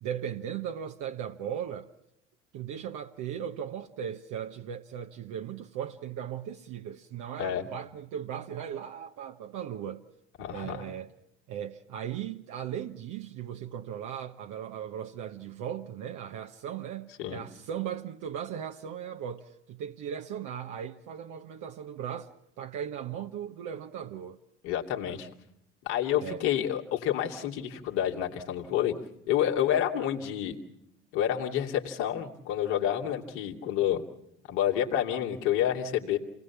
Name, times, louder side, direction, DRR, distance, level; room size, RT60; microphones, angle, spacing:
voice 1, 0.0-1.9 2.5-10.0 10.5-11.1 11.5-22.3 22.6-24.4 26.2-26.4, right 9 dB, 55° right, 1.3 m, -37 dB
voice 2, 10.4-10.8 17.2-17.4 24.6-25.3 25.8-29.0 29.3-30.6 31.1-34.0 34.5-36.2, left 10 dB, 70° left, 2.8 m, -29 dB
28.5 x 19.5 x 7.2 m
hypercardioid pair, 60°, 36 cm